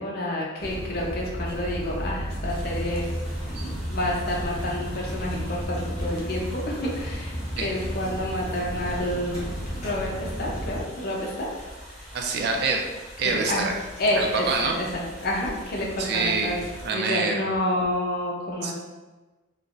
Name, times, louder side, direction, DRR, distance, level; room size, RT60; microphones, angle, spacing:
voice 1, 0.0-3.1 3.4-9.6 9.8-11.5 13.2-13.7 14.0-16.6 16.9-18.7, left 1 dB, 50° left, -3 dB, 0.6 m, -29 dB
sound 1, 0.6-10.8, equal, 35° left, 1.0 m, -33 dB
sound 2, 2.5-16.9, equal, 5° left, 1.1 m, -44 dB
voice 2, 12.1-12.8 13.2-13.7 14.2-14.7 16.0-17.4 18.6-18.7, right 4 dB, 55° right, 2 dB, 0.4 m, -26 dB
3.3 x 2.1 x 2.5 m, 1.2 s
head